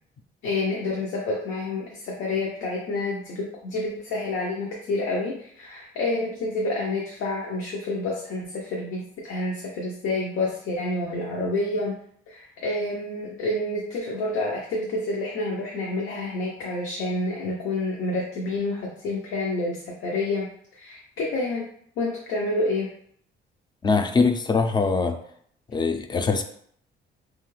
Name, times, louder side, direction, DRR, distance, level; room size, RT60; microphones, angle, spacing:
voice 1, 0.4-12.0 12.3-20.5 20.7-21.6 22.0-22.9, left 2 dB, 85° left, -2 dB, 0.6 m, -28 dB
voice 2, 23.8-25.2 25.7-26.4, left 4 dB, 20° left, 7 dB, 0.3 m, -22 dB
2.7 x 2.3 x 3.0 m, 0.64 s
cardioid pair, 90°, 20 cm